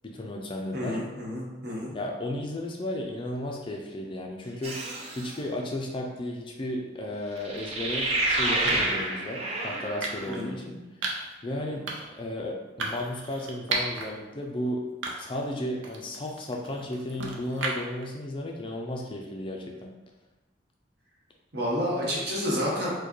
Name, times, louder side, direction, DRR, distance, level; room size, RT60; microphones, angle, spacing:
voice 1, 0.0-1.0 1.9-4.9 5.1-10.8 11.4-11.8 12.1-14.8 15.2-19.9, left 1 dB, 25° left, 0 dB, 0.3 m, -34 dB
voice 2, 0.7-1.9 10.3-10.6 21.5-22.9, equal, 55° right, -5 dB, 1.1 m, -30 dB
sound 1, 4.6-5.3 7.4-10.3, right 2 dB, 35° right, 0.5 m, -29 dB
sound 2, 7.4-7.6 8.7-9.0 10.0-10.4 11.0-11.3 11.9-12.2 12.8-14.1 14.5-14.6 15.0-15.5 15.8-18.0, right 3 dB, 85° right, 0.6 m, -34 dB
4.6 x 2.2 x 3.0 m, 1.1 s
head